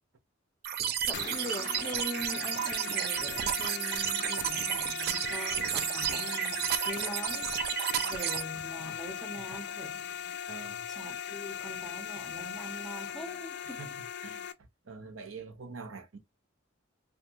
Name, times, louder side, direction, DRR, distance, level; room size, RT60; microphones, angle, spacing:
sound 1, 0.6-8.4, right 10 dB, 50° right, 0.3 m, -32 dB
sound 2, 1.1-14.5, left 9 dB, 55° left, 0.4 m, -39 dB
voice 1, 1.1-7.6 8.0-10.4 10.9-13.8, equal, ahead, 0.6 m, -43 dB
voice 2, 10.5-10.9 13.7-14.5 14.8-16.2, right 4 dB, 75° right, 0.7 m, -45 dB
2.6 x 2.2 x 2.8 m
head